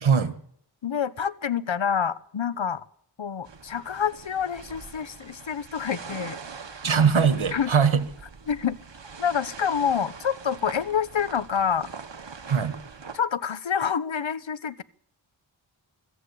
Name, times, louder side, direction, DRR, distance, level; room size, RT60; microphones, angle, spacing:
voice 1, 0.0-0.3 6.8-8.0 12.5-12.7, right 6 dB, 85° right, 11 dB, 1.6 m, -21 dB
voice 2, 0.8-2.8 3.2-6.4 7.5-7.7 8.5-8.8 9.2-11.9 13.1-14.8, left 7 dB, 75° left, 16 dB, 0.9 m, -27 dB
sound 1, 3.4-13.2, right 5 dB, 65° right, 1.4 m, -43 dB
25.0 x 13.0 x 8.4 m, 0.67 s
wide cardioid pair, 60°, 47 cm